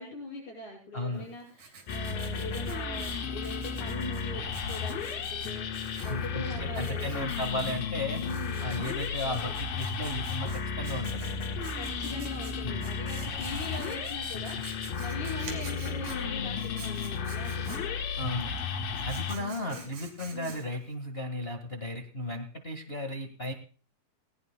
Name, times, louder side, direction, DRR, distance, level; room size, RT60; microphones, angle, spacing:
voice 1, 0.0-7.4 8.2-8.8 9.2-9.5 11.4-11.5 11.8-18.0 19.4-19.8 20.3-20.6, left 2 dB, 55° left, -3 dB, 7.4 m, -41 dB
voice 2, 0.9-1.3 6.1-8.2 8.6-10.5 10.8-11.3 12.6-12.9 18.2-18.5 19.0-23.5, left 1 dB, 40° left, 4 dB, 0.8 m, -35 dB
Writing, 1.1-20.9, right 5 dB, 65° right, 4.0 m, -49 dB
sound 1, 1.9-19.4, left 5 dB, 80° left, 3.1 m, -34 dB
19.5 x 19.0 x 2.2 m, 0.40 s
omnidirectional pair, 3.9 m